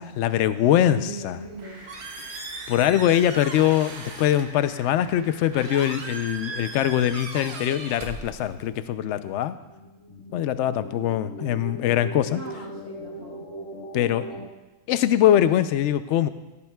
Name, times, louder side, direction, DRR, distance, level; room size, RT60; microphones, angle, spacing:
voice 1, 0.2-1.4 2.7-9.5 10.3-12.4 13.9-14.3 14.9-16.3, left 11 dB, 65° left, 12 dB, 0.7 m, -22 dB
voice 2, 0.7-1.8 12.3-13.4, right 1 dB, 70° right, -8 dB, 2.6 m, -39 dB
Squeak, 1.4-8.8, right 4 dB, 45° right, 1.3 m, -39 dB
sound 1, 1.6-7.2, right 1 dB, 90° right, 3.6 m, -46 dB
sound 2, 8.8-14.5, right 1 dB, 50° left, 1.7 m, -40 dB
15.0 x 14.0 x 2.3 m, 1.1 s
omnidirectional pair, 1.6 m